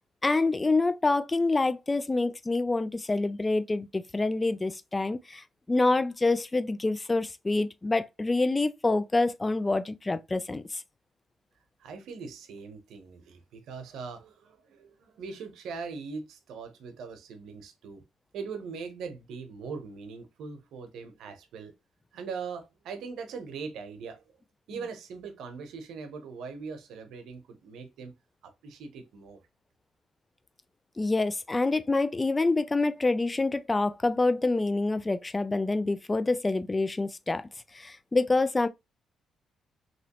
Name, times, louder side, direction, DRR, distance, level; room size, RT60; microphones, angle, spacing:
voice 1, 0.2-10.8 31.0-37.4 37.7-38.7, left 3 dB, 20° left, 0.3 m, -27 dB
voice 2, 11.8-18.0 18.3-21.7 22.1-24.3 24.7-28.1 28.4-29.4, right 5 dB, 80° right, 0.7 m, -41 dB
3.0 x 2.9 x 2.9 m
cardioid pair, 90°, 0 cm